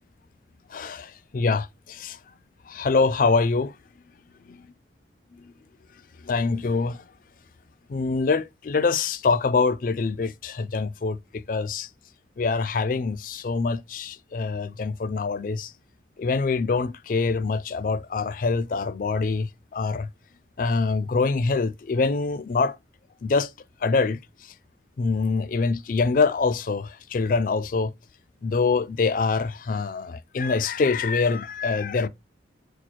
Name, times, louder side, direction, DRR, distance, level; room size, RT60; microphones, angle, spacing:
voice 1, 0.7-2.2 2.7-3.7 4.5-4.6 5.4-5.5 6.2-7.0 7.9-11.9 12.4-15.7 16.2-20.1 20.6-22.8 23.2-23.5 23.8-24.2 25.0-27.9 28.4-32.1, left 4 dB, 50° left, 0.4 m, -25 dB
4.3 x 2.4 x 4.4 m
head